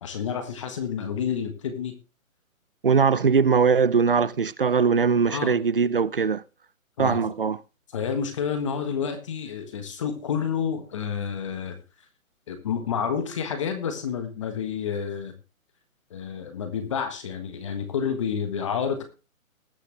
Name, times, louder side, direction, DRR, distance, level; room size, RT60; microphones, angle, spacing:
voice 1, 0.0-1.9 5.3-5.6 7.0-7.2 7.9-11.8 12.5-15.3 16.1-19.0, left 7 dB, 20° left, 1.4 m, -29 dB
voice 2, 2.8-6.4 7.0-7.6, right 5 dB, 40° right, 0.5 m, -21 dB
20.5 x 6.8 x 3.3 m
hypercardioid pair, 165°, 42 cm